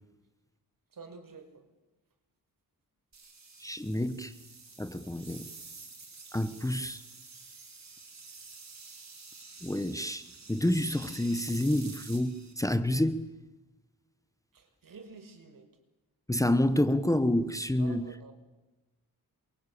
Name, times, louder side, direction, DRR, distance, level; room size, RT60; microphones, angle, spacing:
voice 1, 0.9-1.7 14.5-15.7 17.8-18.3, right 4 dB, 65° right, 5.4 m, -49 dB
sound 1, 3.1-12.5, right 4 dB, 45° right, 6.4 m, -49 dB
voice 2, 3.6-4.3 4.8-5.5 6.3-7.0 9.6-10.2 10.5-13.3 16.3-18.0, left 1 dB, 10° left, 1.2 m, -28 dB
28.0 x 23.5 x 8.6 m
wide cardioid pair, 125°, 37 cm